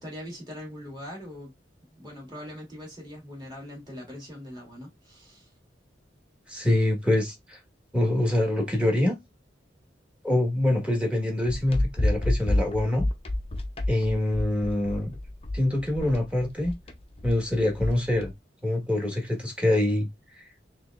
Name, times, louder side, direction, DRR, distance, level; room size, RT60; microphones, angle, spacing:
voice 1, 0.0-1.5 1.9-5.5, equal, 25° right, 2.0 m, -41 dB
voice 2, 6.5-7.6 7.9-9.1 10.2-13.0 13.9-15.1 15.5-16.7 17.2-18.3 18.6-20.1 20.3-20.4, left 1 dB, 5° right, 1.2 m, -25 dB
sound 1, 11.5-18.3, left 1 dB, 35° left, 0.6 m, -29 dB
4.4 x 3.4 x 2.4 m
head